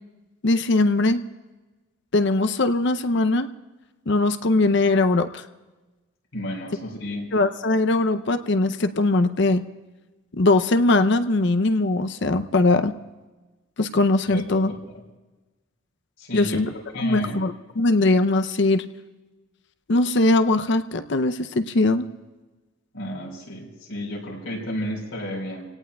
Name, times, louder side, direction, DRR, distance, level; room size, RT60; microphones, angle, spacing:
voice 1, 0.4-1.2 2.1-3.5 4.1-5.4 7.3-9.6 10.3-13.0 13.8-14.7 16.3-16.7 17.0-18.8 19.9-22.1, left 2 dB, 55° left, 9 dB, 0.6 m, -20 dB
voice 2, 6.3-7.3 14.3-14.8 16.2-16.6 16.9-17.4 22.9-25.7, equal, 75° left, -1 dB, 4.4 m, -32 dB
28.5 x 17.5 x 2.3 m, 1.2 s
head